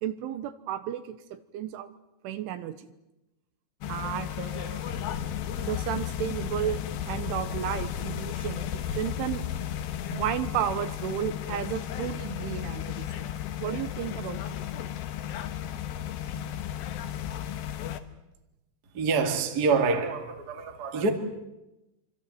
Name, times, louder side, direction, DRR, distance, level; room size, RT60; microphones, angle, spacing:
voice 1, 0.0-1.9 2.2-2.9 3.9-5.1 5.6-6.8 7.1-9.4 10.1-13.3 13.6-14.6, right 11 dB, 80° right, 3.4 m, -33 dB
sound 1, 3.8-18.0, left 10 dB, 70° left, 2.3 m, -34 dB
voice 2, 18.9-21.1, right 4 dB, 40° right, 1.4 m, -26 dB
25.5 x 25.0 x 7.8 m
omnidirectional pair, 5.9 m